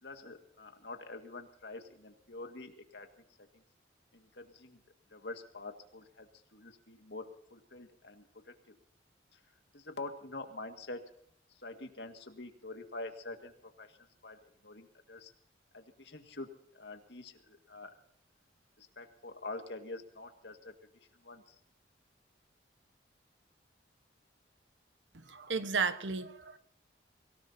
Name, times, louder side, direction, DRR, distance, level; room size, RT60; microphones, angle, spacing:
voice 1, 0.0-3.1 3.4-3.6 4.1-4.8 5.1-8.7 9.3-9.4 9.7-11.0 11.5-15.3 15.7-17.9 18.8-21.6, left 2 dB, 70° left, 5 dB, 1.9 m, -46 dB
voice 2, 25.1-26.6, right 5 dB, 80° right, 11 dB, 1.2 m, -34 dB
24.5 x 17.5 x 2.8 m, 0.68 s
head